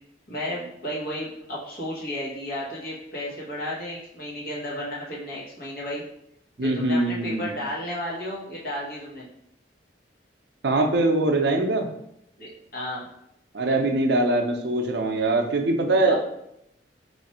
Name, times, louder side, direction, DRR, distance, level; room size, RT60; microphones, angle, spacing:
voice 1, 0.3-6.0 6.6-9.3 12.4-13.0 16.0-16.2, left 1 dB, 55° left, -5 dB, 1.2 m, -33 dB
voice 2, 6.6-7.5 10.6-11.9 13.5-16.2, right 2 dB, 65° right, 4 dB, 0.5 m, -22 dB
3.1 x 2.5 x 4.2 m, 0.77 s
head